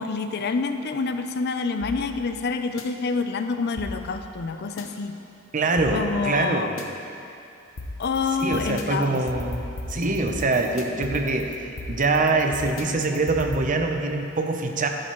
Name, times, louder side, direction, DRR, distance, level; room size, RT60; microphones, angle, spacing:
voice 1, 0.0-5.2 5.9-6.7 8.0-9.2, left 4 dB, 55° left, 8 dB, 0.5 m, -27 dB
sound 1, 1.8-2.8 3.8-4.8 5.8-6.8 7.8-13.6, left 2 dB, 75° left, 0.8 m, -37 dB
voice 2, 5.5-6.8 8.4-14.9, right 3 dB, 40° right, 4 dB, 0.7 m, -24 dB
11.5 x 10.0 x 3.1 m, 2.7 s
head